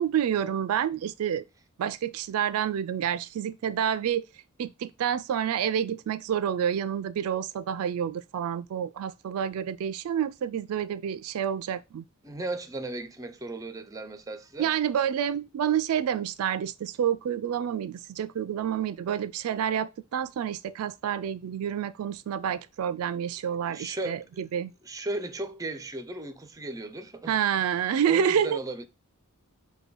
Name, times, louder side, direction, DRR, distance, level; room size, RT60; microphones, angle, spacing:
voice 1, 0.0-1.4 1.8-4.2 4.6-12.0 14.6-24.7 27.3-28.6, right 9 dB, 70° right, 0.3 m, -28 dB
voice 2, 12.2-14.7 23.4-24.2 24.8-27.4 28.1-28.8, right 2 dB, 15° right, 0.5 m, -36 dB
5.1 x 2.2 x 4.5 m
head